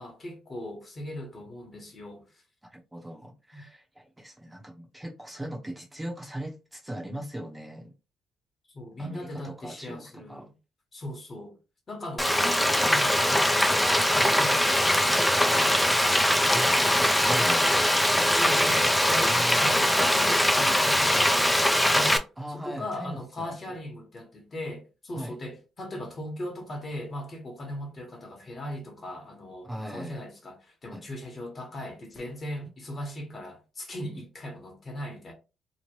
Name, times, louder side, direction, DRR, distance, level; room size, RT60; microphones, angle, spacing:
voice 1, 0.0-2.4 3.5-3.6 8.7-10.5 10.9-11.6 11.9-15.8 18.3-35.3, left 1 dB, 40° left, 1.1 m, -39 dB
voice 2, 2.7-7.9 9.0-10.5 16.5-16.8 17.2-17.9 19.2-19.6 22.4-23.5 25.2-25.3 29.6-30.2 30.9-31.0, right 1 dB, 10° right, 0.7 m, -39 dB
Frying (food), 12.2-22.2, left 1 dB, 5° left, 0.3 m, -22 dB
3.0 x 2.1 x 3.0 m
cardioid pair, 90°, 0 cm